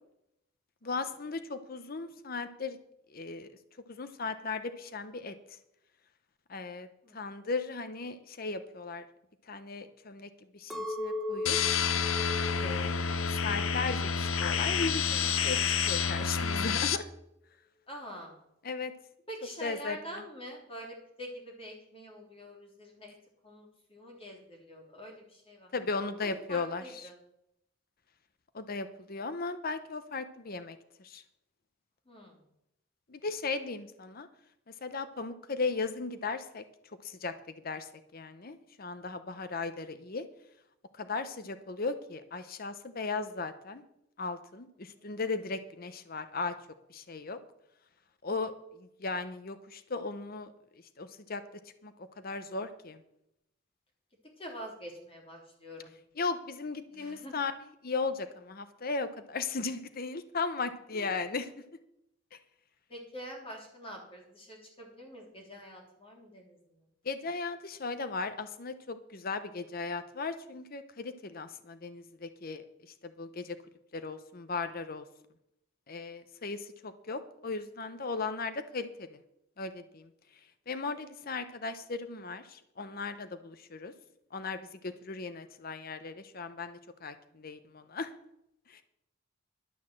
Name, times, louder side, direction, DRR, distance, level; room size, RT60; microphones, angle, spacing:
voice 1, 0.8-2.8 3.1-3.5 3.9-5.3 6.5-6.9 7.1-9.0 9.5-11.6 12.6-15.6 15.9-17.1 18.6-18.9 19.6-20.2 25.7-27.1 28.5-31.2 33.1-34.3 34.8-36.6 37.0-37.3 37.6-40.2 41.0-43.8 44.2-46.5 46.9-47.4 48.2-50.5 51.0-51.4 51.8-53.0 56.2-57.5 57.8-61.5 67.0-72.6 73.0-73.6 73.9-75.0 75.9-79.2 79.6-80.1 80.7-83.9 84.3-88.1 88.7-88.8, left 4 dB, 45° left, 10 dB, 0.8 m, -37 dB
Chink clink, 10.7-15.0 15.4-16.0, left 2 dB, ahead, 1.0 m, -39 dB
sound 1, 11.5-17.0, left 6 dB, 80° left, 0.7 m, -29 dB
voice 2, 17.9-18.3 19.3-23.1 23.4-25.7 26.1-27.2 32.1-32.4 44.9-45.0 54.4-55.9 56.9-57.3 60.9-61.1 62.9-66.8, equal, 30° left, 1 dB, 3.2 m, -46 dB
12.0 x 6.5 x 7.5 m, 0.80 s
head